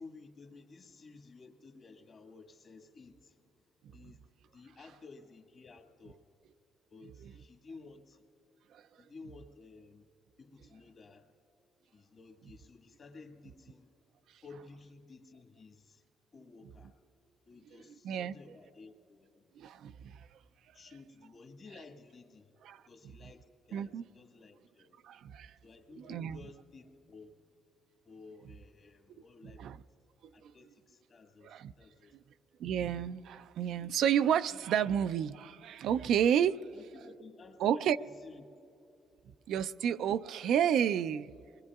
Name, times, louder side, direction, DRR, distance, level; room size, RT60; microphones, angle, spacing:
voice 1, 0.0-3.4 3.9-6.2 6.9-8.2 9.0-10.1 10.4-11.3 11.9-13.9 14.4-16.0 16.3-16.9 17.5-19.4 20.7-22.5 22.9-25.0 25.6-27.4 28.0-29.7 30.3-32.2 36.7-38.5, left 3 dB, 50° left, 1.5 m, -54 dB
voice 2, 19.6-20.3 22.6-22.8 23.7-24.0 25.0-25.5 26.0-26.4 29.6-29.8 30.4-30.5 31.4-31.7 32.6-36.7 37.6-38.0 39.5-41.3, right 9 dB, 75° right, 0.3 m, -31 dB
26.5 x 21.5 x 2.4 m
cardioid pair, 90°, 0 cm